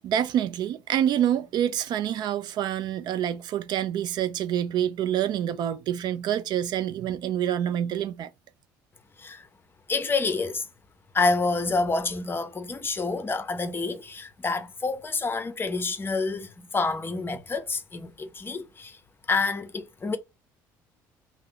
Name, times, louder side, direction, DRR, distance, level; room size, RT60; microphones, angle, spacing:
voice 1, 0.0-8.3, right 10 dB, 55° right, 0.3 m, -27 dB
voice 2, 9.9-10.7 11.1-19.0 19.3-20.2, left 3 dB, 25° left, 0.6 m, -28 dB
2.8 x 2.0 x 3.7 m
supercardioid pair, 75°, 8 cm